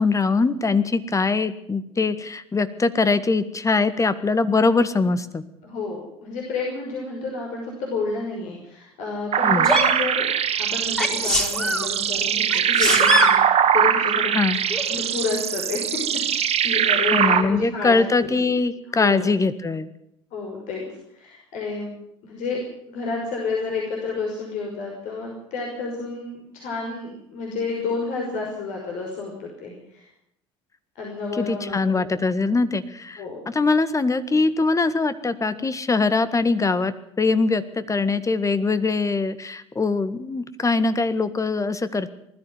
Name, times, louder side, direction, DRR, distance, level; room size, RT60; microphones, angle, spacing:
voice 1, 0.0-5.4 9.4-9.7 14.3-14.6 17.1-19.9 31.4-42.1, left 3 dB, 20° left, 13 dB, 1.8 m, -22 dB
voice 2, 5.6-10.3 10.6-13.4 13.7-14.4 14.9-18.5 18.9-19.2 20.3-20.8 21.1-21.9 22.2-30.1 31.0-32.2 33.2-33.4, left 4 dB, 60° left, -1 dB, 5.9 m, -30 dB
sound 1, 9.3-17.4, right 9 dB, 45° right, 2.3 m, -21 dB
Sneeze, 9.6-10.0 11.0-11.9 12.5-13.4 14.7-14.8, left 1 dB, 5° left, 4.2 m, -22 dB
20.0 x 14.0 x 9.6 m, 0.76 s
hypercardioid pair, 65°, 14 cm